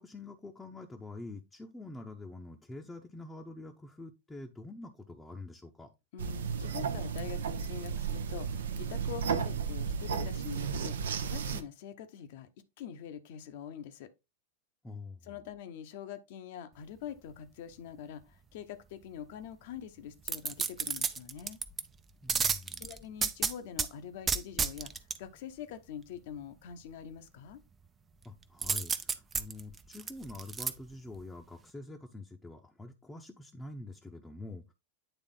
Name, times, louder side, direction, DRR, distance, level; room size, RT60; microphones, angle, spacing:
voice 1, 0.0-5.9 14.8-15.4 22.2-23.0 28.2-34.7, left 2 dB, 10° left, 0.8 m, -46 dB
voice 2, 6.1-12.5 12.8-14.1 15.2-21.6 22.8-24.9 25.2-27.6, left 9 dB, 50° left, 0.9 m, -44 dB
sound 1, 6.2-11.6, right 6 dB, 65° right, 0.7 m, -34 dB
sound 2, 20.3-21.8 22.3-23.9 24.3-25.2 28.6-30.7 31.2-31.3, right 6 dB, 20° right, 0.5 m, -31 dB
9.1 x 3.5 x 3.8 m
figure-of-eight pair, 90°, 0 cm